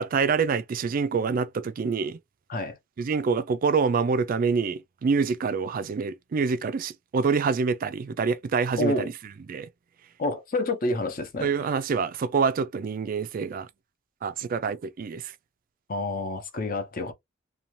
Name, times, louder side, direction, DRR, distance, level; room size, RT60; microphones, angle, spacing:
voice 1, 0.0-2.2 3.0-9.1 9.5-9.7 11.4-13.7 14.2-15.2, right 5 dB, 45° right, 0.3 m, -26 dB
voice 2, 8.8-9.1 10.2-11.5 15.9-17.1, left 2 dB, 45° left, 0.6 m, -28 dB
2.6 x 2.2 x 3.0 m
head